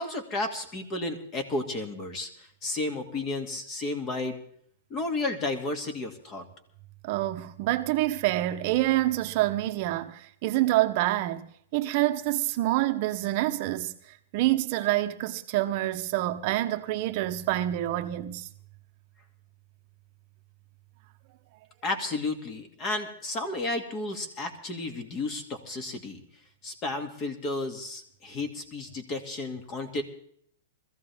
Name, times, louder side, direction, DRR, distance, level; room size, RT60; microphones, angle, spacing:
voice 1, 0.0-2.3 2.6-4.4 4.9-6.4 21.8-26.2 26.6-30.0, left 2 dB, 30° left, 2.5 m, -32 dB
voice 2, 7.0-13.9 14.3-18.5, right 15 dB, 45° right, 0.9 m, -27 dB
21.5 x 14.5 x 3.6 m
hypercardioid pair, 145°, 0 cm